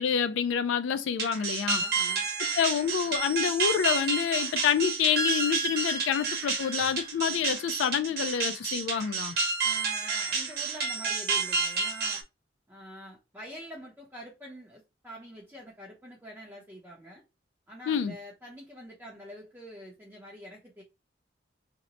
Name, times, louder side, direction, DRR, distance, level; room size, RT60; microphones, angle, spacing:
voice 1, 0.0-1.8 2.6-9.3 17.9-18.1, left 8 dB, 80° left, 0.3 m, -27 dB
sound 1, 1.2-12.2, right 4 dB, 55° right, 1.0 m, -30 dB
voice 2, 1.8-2.3 9.6-12.2 12.7-17.2 17.7-20.8, equal, 10° right, 0.6 m, -46 dB
2.8 x 2.1 x 3.9 m
head